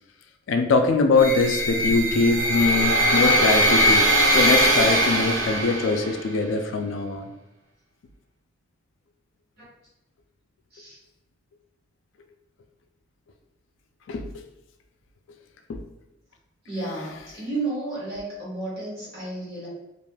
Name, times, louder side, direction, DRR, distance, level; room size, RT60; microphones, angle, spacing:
voice 1, 0.5-4.0 4.3-7.3 14.1-14.2 15.7-15.8, left 3 dB, 70° left, 5 dB, 0.3 m, -22 dB
sound 1, 1.2-6.2, equal, 65° right, 0.5 m, -21 dB
voice 2, 16.7-19.7, right 2 dB, 50° right, -7 dB, 1.3 m, -32 dB
3.2 x 2.4 x 2.2 m, 0.90 s
head